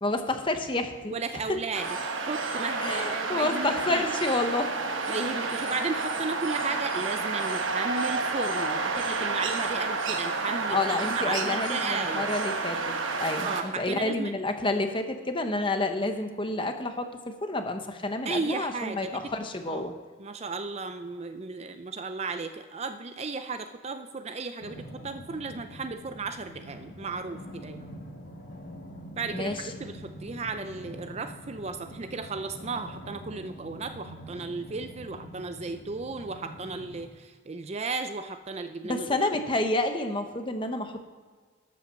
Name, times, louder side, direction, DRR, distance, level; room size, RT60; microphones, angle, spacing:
voice 1, 0.0-1.1 2.8-4.7 10.7-17.1 17.4-19.9 29.3-29.6 38.8-41.0, left 2 dB, 25° left, 6 dB, 0.9 m, -29 dB
voice 2, 1.1-4.0 5.1-12.3 13.4-14.4 18.2-19.3 19.7-19.9 20.2-27.9 29.2-39.3, right 4 dB, 30° right, 9 dB, 0.4 m, -35 dB
sound 1, 1.7-13.6, right 3 dB, 65° right, 1.1 m, -30 dB
sound 2, 24.6-37.1, equal, 50° left, 1.4 m, -45 dB
12.5 x 5.8 x 6.9 m, 1.5 s
head